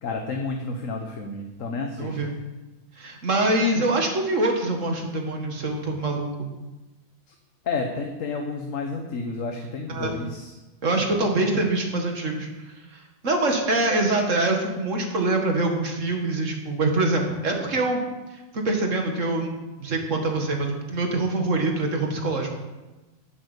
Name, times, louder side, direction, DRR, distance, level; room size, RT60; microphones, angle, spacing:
voice 1, 0.0-2.3 7.3-7.4 7.6-10.5, left 3 dB, 70° left, 3 dB, 1.5 m, -31 dB
voice 2, 2.0-2.3 3.0-6.6 9.9-10.2 10.8-18.0 18.5-19.5 19.8-22.5, right 2 dB, 65° right, 3 dB, 2.3 m, -24 dB
10.5 x 8.4 x 8.3 m, 1.1 s
omnidirectional pair, 1.4 m